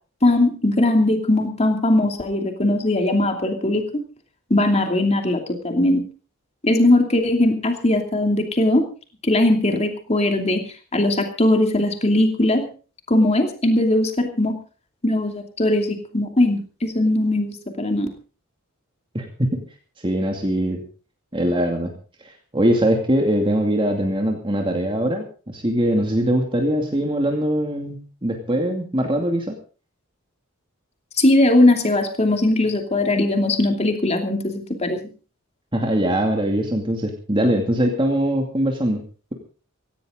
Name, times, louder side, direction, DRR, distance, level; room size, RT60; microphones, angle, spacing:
voice 1, 0.2-4.0 4.5-6.0 6.6-8.8 9.2-10.6 10.9-12.6 13.1-14.6 15.0-18.1 31.2-35.0, left 1 dB, 30° left, 4 dB, 2.7 m, -19 dB
voice 2, 19.1-19.6 20.0-20.8 21.3-21.9 22.5-29.5 35.7-39.0, right 1 dB, 25° right, 2 dB, 2.5 m, -22 dB
17.0 x 17.0 x 3.9 m, 0.37 s
head